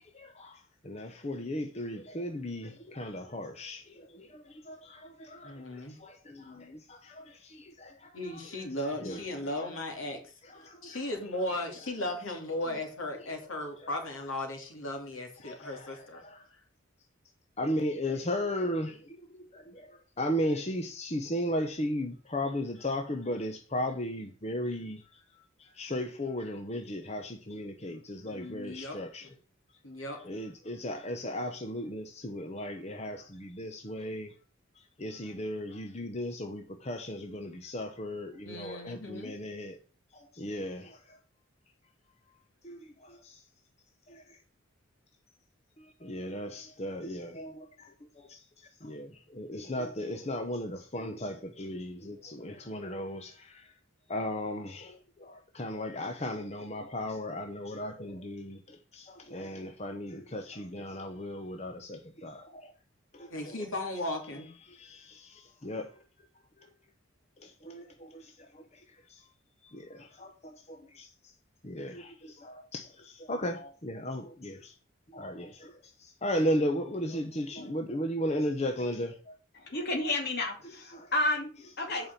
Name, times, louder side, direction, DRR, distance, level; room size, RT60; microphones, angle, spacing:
voice 1, 0.1-8.4 9.0-9.2 10.6-11.0 15.4-16.4 17.6-25.0 25.6-29.3 30.2-34.3 35.0-39.8 40.1-41.0 42.6-43.4 44.1-44.2 45.8-48.4 48.8-53.7 54.1-62.7 63.1-63.6 64.7-65.9 67.4-68.6 69.1-69.2 69.7-71.1 71.6-74.7 75.1-79.3 80.9-81.1 81.9-82.0, left 1 dB, 30° left, 0.9 m, -36 dB
voice 2, 5.4-6.0 8.1-10.3 10.8-16.2 28.3-29.3 29.8-30.2 38.4-39.4 63.3-64.5 76.4-76.5, left 1 dB, 80° left, 3.1 m, -36 dB
voice 3, 79.5-82.1, left 2 dB, 50° left, 2.6 m, -31 dB
8.6 x 5.6 x 6.9 m
head